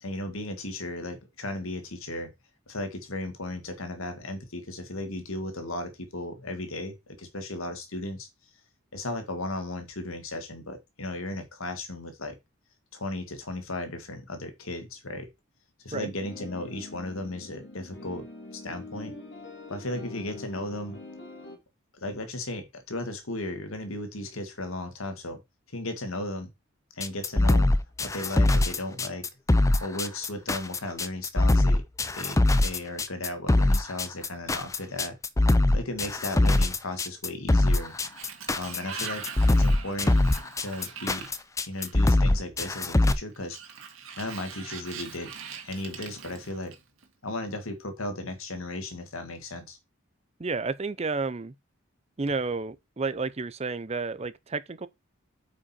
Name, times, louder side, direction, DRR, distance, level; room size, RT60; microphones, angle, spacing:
voice 1, 0.0-2.3 2.7-8.3 8.9-12.4 12.9-15.3 15.8-18.3 18.5-19.1 19.7-21.0 22.0-25.4 25.7-26.5 27.0-27.7 28.0-29.3 29.8-31.8 32.1-35.2 35.7-37.9 38.6-40.2 40.6-41.3 41.7-43.6 44.2-45.3 45.6-46.8 47.2-49.8, left 1 dB, 80° left, 1.9 m, -35 dB
sound 1, 16.2-21.6, left 2 dB, 55° left, 2.7 m, -43 dB
sound 2, 27.0-43.1, left 2 dB, 15° left, 0.4 m, -22 dB
Sliding door, 37.6-42.2 43.3-47.0, right 6 dB, 75° right, 1.9 m, -42 dB
voice 2, 50.4-51.5 52.2-54.9, right 4 dB, 30° right, 0.6 m, -31 dB
8.5 x 5.2 x 4.3 m
head